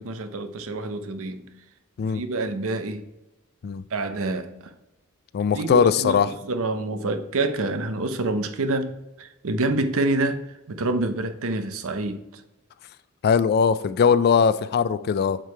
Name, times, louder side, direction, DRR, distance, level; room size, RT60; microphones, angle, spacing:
voice 1, 0.0-1.5 2.1-3.0 3.9-4.7 5.5-12.4, right 2 dB, 65° right, 0.7 m, -27 dB
voice 2, 5.3-6.3 13.2-15.4, left 6 dB, 45° left, 0.3 m, -20 dB
7.4 x 4.8 x 4.5 m
head